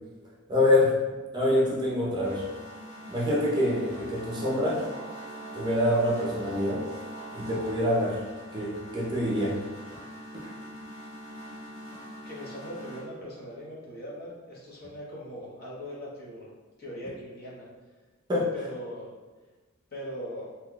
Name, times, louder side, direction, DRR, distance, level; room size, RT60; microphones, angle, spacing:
voice 1, 0.5-0.9 1.3-2.4 3.1-4.9 5.5-6.8 7.3-8.2 8.5-9.6 18.3-18.5, left 1 dB, 20° right, -4 dB, 0.6 m, -25 dB
sound 1, 1.9-13.0, right 1 dB, 75° left, 1.4 m, -42 dB
voice 2, 12.2-16.5 16.8-17.7 18.5-19.1 19.9-20.5, equal, 50° left, -6 dB, 0.9 m, -40 dB
2.8 x 2.2 x 3.7 m, 1.2 s
head